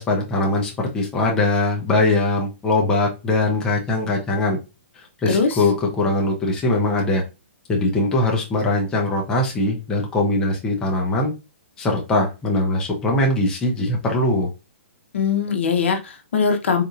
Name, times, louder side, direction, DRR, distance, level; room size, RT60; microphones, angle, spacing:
voice 1, 0.0-4.6 5.0-7.2 7.7-11.3 11.8-14.5, left 2 dB, 10° left, -1 dB, 0.5 m, -21 dB
voice 2, 5.3-5.6 15.1-16.8, left 5 dB, 65° left, 5 dB, 0.8 m, -21 dB
3.8 x 2.9 x 2.4 m, 0.28 s
hypercardioid pair, 165°, 7 cm